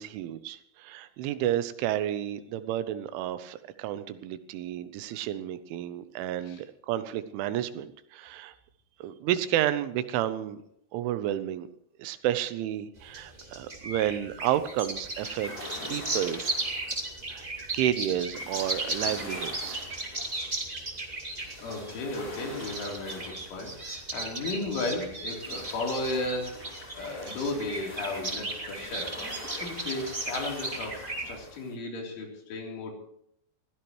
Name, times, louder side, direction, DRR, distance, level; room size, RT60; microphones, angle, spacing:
voice 1, 0.0-8.5 9.0-10.6 10.9-11.7 12.0-15.5 15.9-16.5 17.3-17.5 17.7-19.9 21.0-21.6, right 12 dB, 85° right, 12 dB, 3.3 m, -31 dB
sound 1, 13.0-31.4, right 2 dB, 35° right, 0.7 m, -36 dB
sound 2, 14.5-31.7, left 1 dB, 20° left, 3.7 m, -45 dB
voice 2, 21.6-29.2 29.5-32.9, left 2 dB, 80° left, 0 dB, 6.1 m, -34 dB
22.0 x 16.5 x 3.2 m, 0.71 s
omnidirectional pair, 5.4 m